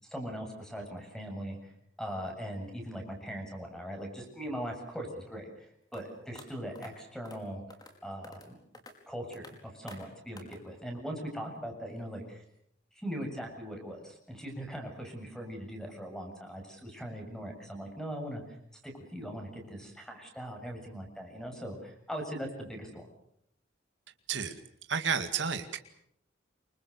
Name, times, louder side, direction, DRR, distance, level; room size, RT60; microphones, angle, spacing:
voice 1, 0.0-1.7 2.0-7.6 8.0-8.6 9.1-12.4 12.9-23.1, equal, 5° left, 3 dB, 7.4 m, -40 dB
sound 1, 5.9-6.0 6.3-6.4 6.7-6.9 7.2-7.4 7.7-7.9 8.2-8.5 8.7-8.9 9.3-9.5 9.9-10.0 10.4-10.6, left 2 dB, 20° left, 5.0 m, -49 dB
voice 2, 24.9-25.8, right 6 dB, 70° right, 7 dB, 2.2 m, -31 dB
28.0 x 25.5 x 6.7 m, 0.72 s
head